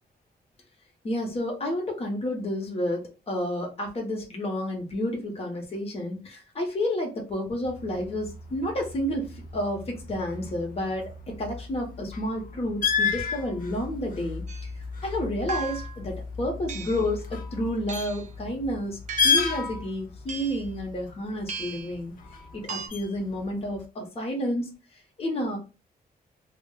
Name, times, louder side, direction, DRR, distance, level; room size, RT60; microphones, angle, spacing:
voice 1, 1.0-14.4 15.0-22.2 22.5-24.7 25.2-25.6, left 1 dB, 35° left, 0 dB, 1.0 m, -30 dB
sound 1, 7.6-23.8, left 5 dB, 55° left, 0.5 m, -33 dB
sound 2, 14.5-14.7 15.5-16.0 16.7-17.1 17.9-18.3 19.1-19.6 20.3-20.7 21.5-21.9 22.7-22.9, right 6 dB, 50° right, 0.4 m, -37 dB
2.5 x 2.2 x 3.7 m, 0.31 s
wide cardioid pair, 155°, 17 cm